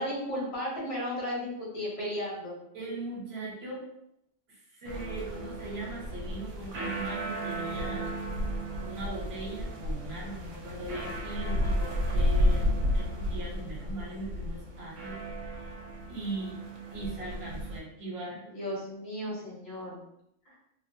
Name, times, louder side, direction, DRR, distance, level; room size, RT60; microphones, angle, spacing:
voice 1, 0.0-2.6 18.5-20.0 20.5-20.6, equal, 60° left, -5 dB, 1.3 m, -34 dB
voice 2, 2.7-3.9 4.5-8.1 8.8-15.2 15.6-15.7 16.1-16.6 16.9-18.4, right 2 dB, 60° right, -5 dB, 1.1 m, -39 dB
sound 1, 4.8-17.8, equal, 90° right, 1.0 m, -32 dB
2.9 x 2.1 x 2.6 m, 0.76 s
omnidirectional pair, 1.2 m